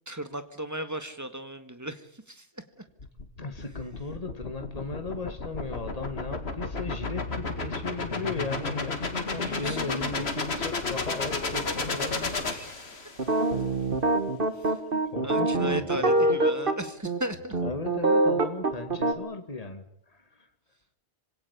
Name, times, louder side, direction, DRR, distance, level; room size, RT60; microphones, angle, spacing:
voice 1, 0.1-2.6 9.1-9.9 10.2-10.3 12.5-13.1 14.6-14.8 15.2-17.6, right 1 dB, 15° right, 9 dB, 1.8 m, -37 dB
sound 1, 3.0-13.3, left 3 dB, 75° left, 2.4 m, -32 dB
voice 2, 3.4-13.0 15.0-16.3 17.6-20.5, left 3 dB, 35° left, 7 dB, 2.3 m, -37 dB
sound 2, 13.2-16.8 17.0-17.2 17.5-19.1, right 2 dB, 55° right, 2.0 m, -24 dB
26.5 x 17.5 x 8.5 m, 0.67 s
omnidirectional pair, 1.1 m